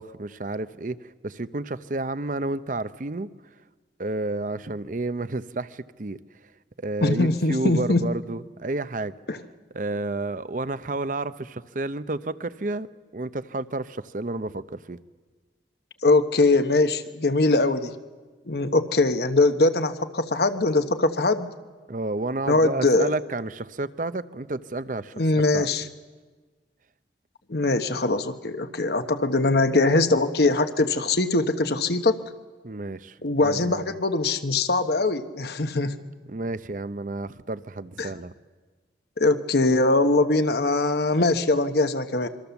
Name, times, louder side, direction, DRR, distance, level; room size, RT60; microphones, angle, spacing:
voice 1, 0.0-3.3 4.0-6.2 6.8-9.1 9.7-12.9 13.1-15.0 21.9-25.7 32.6-34.0 36.3-38.3, right 2 dB, 45° right, 14 dB, 0.7 m, -31 dB
voice 2, 7.0-8.0 9.3-9.4 16.0-17.9 18.5-21.5 22.5-23.1 25.2-25.8 27.5-32.2 33.2-35.9 38.0-38.1 39.2-42.3, left 2 dB, 65° left, 9 dB, 1.2 m, -22 dB
26.0 x 24.0 x 7.1 m, 1.4 s
head